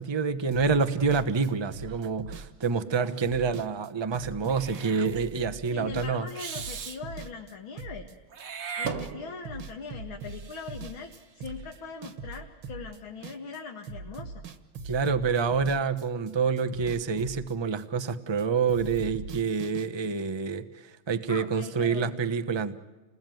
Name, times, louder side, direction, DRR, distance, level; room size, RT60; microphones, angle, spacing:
voice 1, 0.0-6.3 14.8-22.8, right 5 dB, 30° right, 8 dB, 0.4 m, -27 dB
sound 1, 0.5-9.2 9.4-13.6 13.8-18.4 18.7-19.9, right 4 dB, 65° right, 2.2 m, -41 dB
Meow / Hiss, 4.5-5.1 6.4-7.0 8.3-9.6, right 7 dB, 45° right, 1.4 m, -37 dB
voice 2, 5.7-8.1 8.8-14.4 21.3-22.1, left 5 dB, 70° left, 2 dB, 2.6 m, -41 dB
28.5 x 20.5 x 9.3 m, 1.2 s
omnidirectional pair, 2.4 m